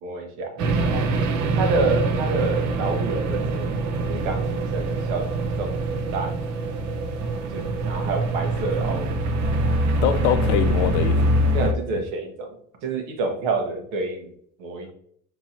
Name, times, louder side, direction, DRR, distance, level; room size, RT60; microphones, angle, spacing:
voice 1, 0.0-1.1 1.6-3.8 4.1-6.3 7.5-9.1 11.5-14.3 14.6-14.9, right 3 dB, 75° right, 1.1 m, -28 dB
sound 1, 0.6-11.7, right 2 dB, 50° right, 0.7 m, -24 dB
voice 2, 9.6-11.4, left 10 dB, 75° left, 0.5 m, -24 dB
4.6 x 3.0 x 2.8 m
hypercardioid pair, 75°, 35 cm